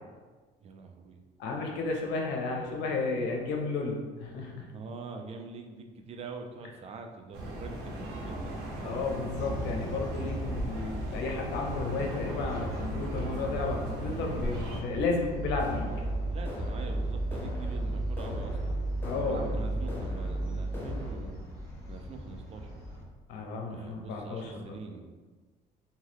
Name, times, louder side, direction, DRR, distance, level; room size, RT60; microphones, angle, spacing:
voice 1, 0.6-1.2 4.7-8.6 16.3-18.8 19.1-21.5 21.9-22.8 23.7-25.1, right 4 dB, 40° right, 4 dB, 0.4 m, -44 dB
voice 2, 1.4-4.7 8.8-15.9 19.0-19.6 23.3-24.8, left 3 dB, 85° left, 1 dB, 0.6 m, -33 dB
sound 1, 7.3-14.8, right 1 dB, 75° right, 0.7 m, -37 dB
sound 2, 9.5-23.0, right 1 dB, 20° right, 1.2 m, -40 dB
sound 3, 15.3-21.1, right 1 dB, 15° left, 0.6 m, -33 dB
2.7 x 2.3 x 3.3 m, 1.4 s
cardioid pair, 110°, 17 cm